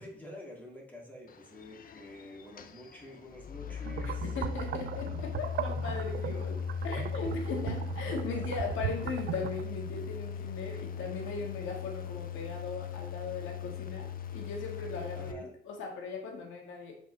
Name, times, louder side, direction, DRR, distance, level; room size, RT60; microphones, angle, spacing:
voice 1, 0.0-4.4 15.2-15.5, left 1 dB, 10° left, -2 dB, 2.7 m, -48 dB
sound 1, 1.3-15.3, left 5 dB, 45° left, 0.6 m, -39 dB
sound 2, 3.8-9.6, right 11 dB, 60° right, 0.4 m, -39 dB
voice 2, 4.0-16.9, left 4 dB, 85° left, 2 dB, 1.8 m, -38 dB
7.7 x 5.2 x 3.4 m, 0.67 s
cardioid pair, 90°, 20 cm